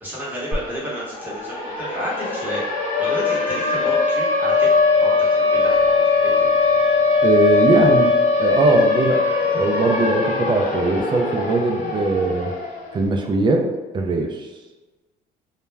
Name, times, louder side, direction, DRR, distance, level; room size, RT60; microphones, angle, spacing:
voice 1, 0.0-2.6 3.0-4.7 5.0-6.3, equal, 10° right, -7 dB, 1.0 m, -31 dB
Siren, 0.5-0.6 0.9-13.0, left 4 dB, 45° left, 0.6 m, -20 dB
voice 2, 7.2-9.2 9.5-12.5 12.9-13.7 13.9-14.5, right 3 dB, 30° right, 2 dB, 0.4 m, -20 dB
2.3 x 2.1 x 3.2 m, 1.2 s
cardioid pair, 110°, 17 cm